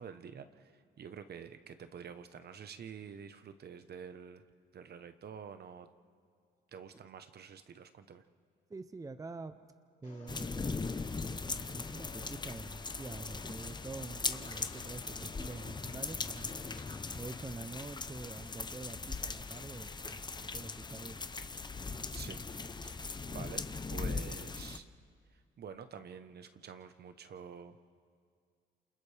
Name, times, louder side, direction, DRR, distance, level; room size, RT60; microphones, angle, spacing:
voice 1, 0.0-4.4 4.7-5.9 6.7-8.2 22.1-22.4 22.8-24.9 25.3-27.8, right 7 dB, 55° right, 9 dB, 1.1 m, -48 dB
voice 2, 8.7-9.6 10.0-11.0 11.3-16.5 17.1-20.3 20.5-21.1, right 3 dB, 15° right, 10 dB, 0.7 m, -46 dB
sound 1, 10.0-17.4, left 4 dB, 40° left, 2.8 m, -54 dB
sound 2, 10.3-24.8, left 4 dB, 20° left, 0.8 m, -40 dB
28.5 x 27.5 x 3.5 m, 2.2 s
cardioid pair, 90°, 20 cm